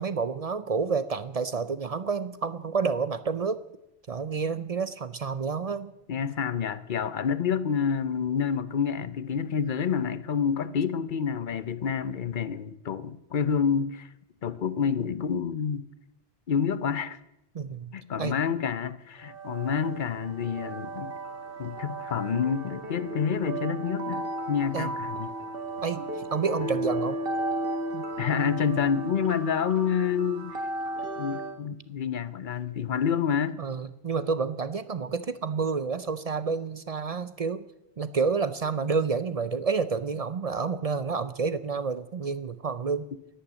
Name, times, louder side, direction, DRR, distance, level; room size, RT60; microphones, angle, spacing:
voice 1, 0.0-3.6 4.1-5.9 17.5-17.9 18.2-18.3 24.7-24.9 25.8-26.0 26.3-27.2 27.9-28.0 33.6-37.7 38.0-43.1, right 5 dB, 45° right, 0.6 m, -29 dB
voice 2, 6.1-14.1 14.4-15.9 16.5-17.2 17.9-21.1 21.6-25.3 28.2-30.6 31.2-33.6, left 7 dB, 55° left, 0.8 m, -28 dB
sound 1, 19.2-31.6, right 1 dB, 60° right, 1.6 m, -34 dB
11.5 x 11.5 x 8.1 m
omnidirectional pair, 1.1 m